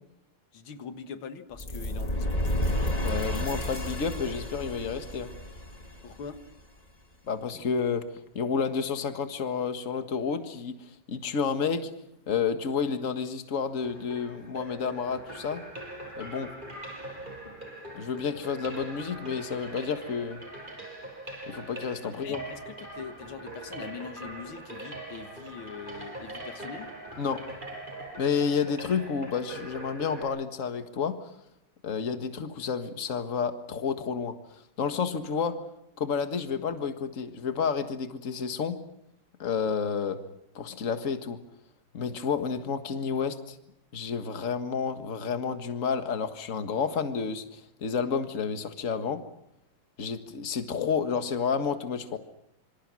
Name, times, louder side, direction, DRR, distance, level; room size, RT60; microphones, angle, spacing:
voice 1, 0.5-2.4 6.0-6.4 22.2-26.9, left 6 dB, 85° left, 9 dB, 2.3 m, -42 dB
sound 1, 1.5-6.6, left 1 dB, 20° left, 2.2 m, -31 dB
sound 2, 1.6-4.4, left 5 dB, 65° left, 3.2 m, -50 dB
voice 2, 3.0-5.3 7.3-8.0 8.4-10.8 11.1-11.9 12.3-15.6 16.2-16.5 17.9-20.4 21.5-22.4 27.2-27.4 28.2-31.2 31.8-35.6 36.0-38.8 39.4-40.2 40.6-41.4 41.9-43.6 43.9-49.2 50.0-52.2, left 6 dB, 40° left, 8 dB, 1.9 m, -30 dB
sound 3, 13.6-30.2, right 1 dB, 25° right, 7.3 m, -42 dB
26.5 x 25.0 x 6.2 m, 0.82 s
omnidirectional pair, 2.2 m